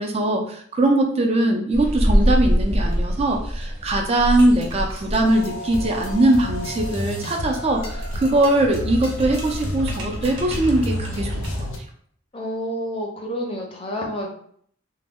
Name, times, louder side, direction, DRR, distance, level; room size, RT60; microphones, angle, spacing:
voice 1, 0.0-11.7, right 1 dB, 30° right, 3 dB, 0.3 m, -21 dB
sound 1, 1.7-11.6, equal, 5° right, 0.7 m, -27 dB
Metal Thing Medium-Heavy Rattling, 2.8-3.0 3.3-3.4 3.6-11.8, right 1 dB, 75° right, 0.6 m, -38 dB
sound 2, 5.2-11.8, left 1 dB, 75° left, 0.5 m, -31 dB
voice 2, 12.3-14.3, equal, 25° left, 0 dB, 0.5 m, -29 dB
2.1 x 2.0 x 3.5 m, 0.62 s
head